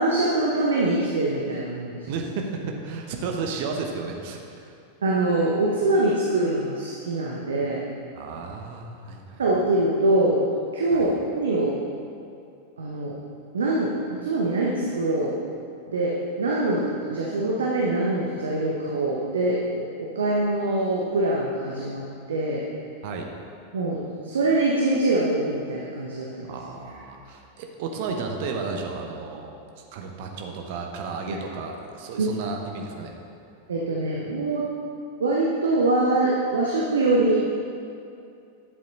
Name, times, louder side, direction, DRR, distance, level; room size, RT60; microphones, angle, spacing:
voice 1, 0.0-2.0 5.0-7.8 9.4-10.4 10.7-11.8 12.8-13.1 13.5-15.3 15.9-22.6 23.7-26.5 31.3-31.4 32.2-32.3 33.7-34.7 35.2-37.4, right 2 dB, 70° right, -3 dB, 1.1 m, -24 dB
voice 2, 2.1-4.8 8.1-9.4 10.9-11.0 23.0-23.3 26.5-29.5 29.9-33.1, right 4 dB, 50° right, 2 dB, 1.2 m, -33 dB
11.0 x 7.5 x 4.0 m, 2.5 s
figure-of-eight pair, 90°, 0 cm